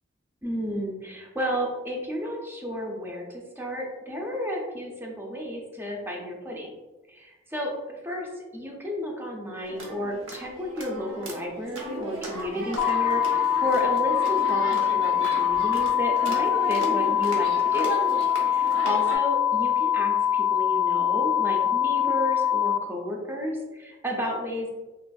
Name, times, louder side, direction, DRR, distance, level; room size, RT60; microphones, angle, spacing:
voice 1, 0.4-6.7 7.1-7.7 8.0-17.9 18.4-24.7, equal, 10° right, 0 dB, 0.4 m, -32 dB
sound 1, 9.6-19.2, right 1 dB, 80° right, 0.7 m, -36 dB
sound 2, 12.8-22.8, left 9 dB, 75° left, 0.3 m, -23 dB
3.4 x 2.4 x 2.2 m, 1.2 s
head